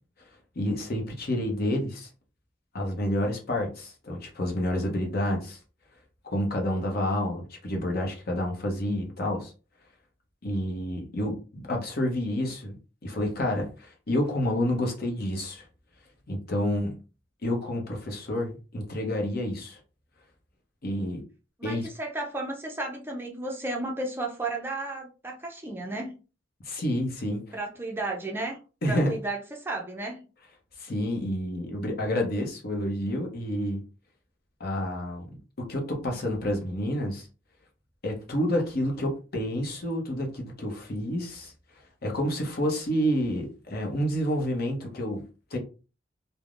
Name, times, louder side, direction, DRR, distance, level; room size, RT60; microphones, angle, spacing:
voice 1, 0.6-2.1 2.7-5.6 6.2-9.5 10.4-12.8 13.0-15.6 16.3-17.0 17.4-19.8 20.8-21.2 21.6-21.9 26.6-27.5 28.8-29.2 30.8-33.8 34.6-37.3 38.0-41.5 42.0-45.2 45.5-45.6, left 1 dB, 55° left, 0.8 m, -29 dB
voice 2, 21.6-26.2 27.5-28.6 28.8-30.2, right 2 dB, 10° right, 0.4 m, -33 dB
3.3 x 2.1 x 2.4 m
head